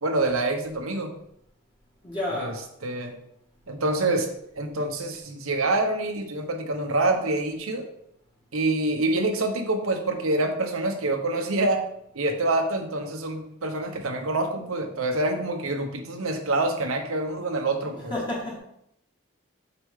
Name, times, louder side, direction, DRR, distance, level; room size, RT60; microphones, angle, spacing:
voice 1, 0.0-1.1 2.4-2.5 2.8-3.1 3.7-4.3 4.5-7.8 8.5-11.9 12.1-18.1, right 2 dB, 85° right, 4 dB, 1.1 m, -26 dB
voice 2, 2.0-2.6 17.9-18.6, left 1 dB, 20° left, -5 dB, 1.8 m, -31 dB
6.8 x 5.9 x 3.7 m, 0.75 s
head